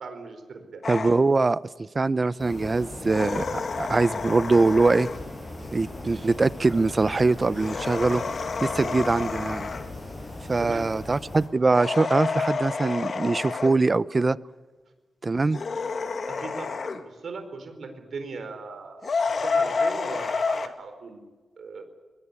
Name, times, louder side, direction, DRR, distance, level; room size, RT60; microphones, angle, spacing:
voice 1, 0.0-0.8 8.7-8.9 10.6-10.9 16.3-21.3 21.6-21.8, right 4 dB, 70° right, 7 dB, 4.4 m, -39 dB
sound 1, 0.8-1.2 3.1-5.3 7.5-9.9 11.7-13.8 15.5-17.0 19.0-20.7, left 4 dB, 55° left, 1.9 m, -29 dB
voice 2, 0.9-5.1 5.7-8.2 8.6-9.7 10.5-14.4 15.2-15.6, right 3 dB, 35° right, 18 dB, 0.7 m, -23 dB
sound 2, 2.4-11.5, left 2 dB, 35° left, 7.7 m, -39 dB
22.5 x 21.0 x 8.5 m, 1.3 s
cardioid pair, 90°, 0 cm